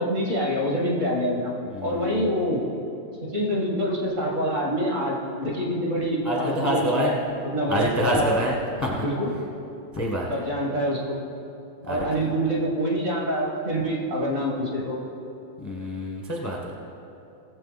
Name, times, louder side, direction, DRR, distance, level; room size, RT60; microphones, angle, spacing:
voice 1, 0.0-1.5 1.8-2.6 3.2-7.1 7.4-8.4 9.0-9.3 10.3-11.2 11.9-15.0, equal, 40° right, -2 dB, 2.2 m, -26 dB
voice 2, 1.7-2.3 6.2-7.1 7.7-9.0 9.9-10.3 11.8-12.0 15.6-16.8, equal, 15° left, -1 dB, 0.8 m, -27 dB
19.0 x 7.6 x 4.1 m, 2.7 s
omnidirectional pair, 2.2 m